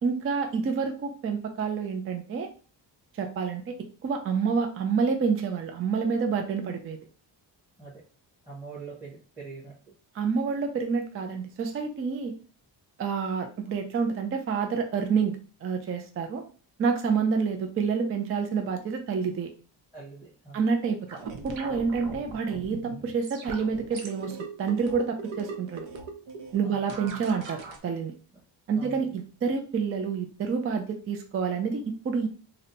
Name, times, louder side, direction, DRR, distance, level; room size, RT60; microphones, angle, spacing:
voice 1, 0.0-2.5 3.2-3.7 4.0-7.0 10.1-12.3 13.0-15.3 15.6-16.4 16.8-19.5 20.5-21.0 21.4-25.9 26.5-28.1 28.7-32.3, right 5 dB, 35° right, 5 dB, 0.4 m, -28 dB
voice 2, 8.4-9.9 19.9-20.6 26.6-26.8 28.8-29.1, right 4 dB, 5° right, -9 dB, 1.0 m, -43 dB
sound 1, 21.1-27.8, right 4 dB, 85° right, 0.7 m, -40 dB
2.7 x 2.1 x 3.9 m, 0.36 s
wide cardioid pair, 165°, 44 cm